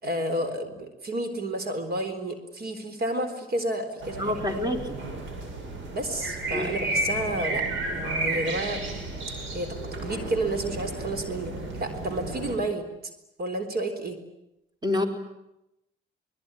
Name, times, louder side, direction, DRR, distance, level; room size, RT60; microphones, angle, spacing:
voice 1, 0.0-4.6 5.9-8.9 9.5-9.8 10.0-12.9 13.4-14.2, right 1 dB, 50° right, 8 dB, 3.9 m, -31 dB
sound 1, 4.0-12.6, right 2 dB, 70° right, 7.9 m, -32 dB
voice 2, 4.2-5.0 6.5-6.7 14.8-15.1, left 1 dB, 20° right, 4 dB, 4.3 m, -27 dB
23.5 x 21.5 x 10.0 m, 0.89 s
cardioid pair, 90°, 20 cm